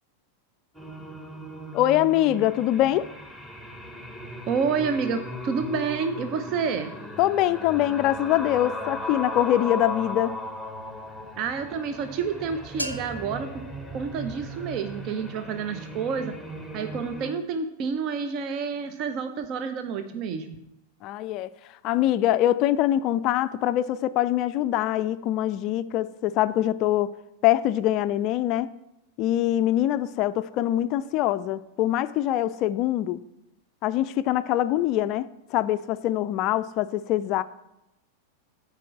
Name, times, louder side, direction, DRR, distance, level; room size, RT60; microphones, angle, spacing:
sound 1, 0.7-17.3, left 1 dB, 5° right, 1.2 m, -37 dB
voice 1, 1.7-3.1 7.2-10.3 21.0-21.5 21.8-27.1 27.4-28.7 29.2-33.2 33.8-37.4, left 13 dB, 40° left, 0.3 m, -24 dB
voice 2, 4.5-6.9 11.4-13.6 13.9-16.3 16.7-20.6, right 5 dB, 40° right, 0.6 m, -29 dB
sound 2, 12.8-14.8, equal, 90° right, 0.6 m, -38 dB
7.5 x 4.8 x 6.9 m
figure-of-eight pair, 90°, 0 cm